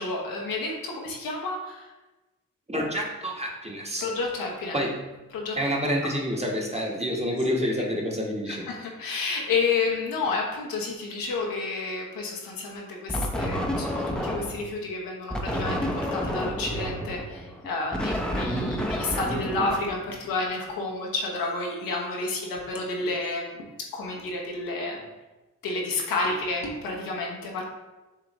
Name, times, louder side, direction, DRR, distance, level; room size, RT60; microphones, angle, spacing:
voice 1, 0.0-1.9 4.0-4.8 5.3-5.6 8.5-23.6 23.9-25.0 25.6-27.6, left 3 dB, 75° left, -1 dB, 1.1 m, -30 dB
voice 2, 2.7-4.1 4.7-4.9 5.6-8.6, equal, 20° right, -1 dB, 1.2 m, -28 dB
sound 1, 13.1-14.7 15.3-20.4, equal, ahead, 0.7 m, -30 dB
6.9 x 2.5 x 3.0 m, 1.1 s
supercardioid pair, 50°, 35 cm